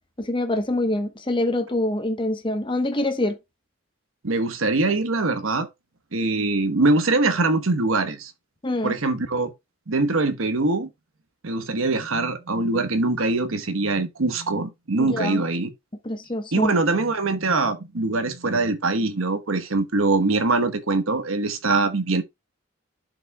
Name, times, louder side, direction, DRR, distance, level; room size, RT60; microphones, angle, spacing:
voice 1, 0.2-3.4 8.6-8.9 15.0-15.4 16.0-16.8, left 1 dB, 25° left, 0.9 m, -25 dB
voice 2, 4.2-5.7 6.1-8.3 8.8-9.5 9.9-10.9 11.4-15.7 16.5-22.2, right 3 dB, 80° right, 1.1 m, -23 dB
12.0 x 5.0 x 2.2 m
head